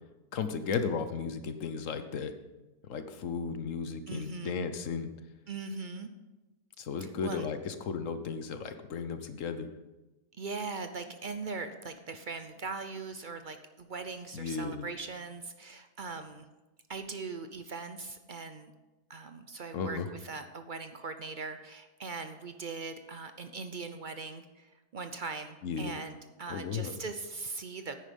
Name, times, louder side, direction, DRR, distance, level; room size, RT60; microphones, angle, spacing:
voice 1, 0.3-2.3 2.9-5.1 6.8-9.7 14.3-14.9 19.7-20.1 25.6-25.9 26.5-27.0, left 5 dB, 60° left, 9 dB, 1.2 m, -35 dB
voice 2, 4.1-4.6 5.5-6.1 7.0-7.5 10.4-16.5 16.9-18.7 19.1-28.0, right 4 dB, 55° right, 8 dB, 0.5 m, -40 dB
9.9 x 9.8 x 5.3 m, 1.1 s
omnidirectional pair, 1.7 m